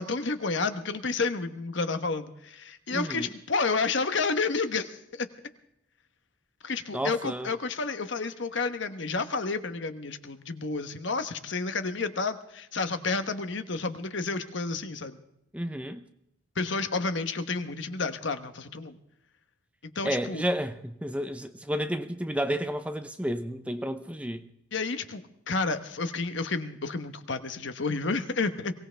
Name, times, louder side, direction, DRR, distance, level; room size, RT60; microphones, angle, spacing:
voice 1, 0.0-5.3 6.6-15.2 16.6-19.0 19.9-20.4 24.7-25.2 25.5-28.7, left 4 dB, 60° left, 1.1 m, -30 dB
voice 2, 2.9-3.3 6.9-7.5 15.5-16.0 20.0-24.5, equal, 5° right, 0.6 m, -31 dB
23.0 x 18.0 x 3.4 m
head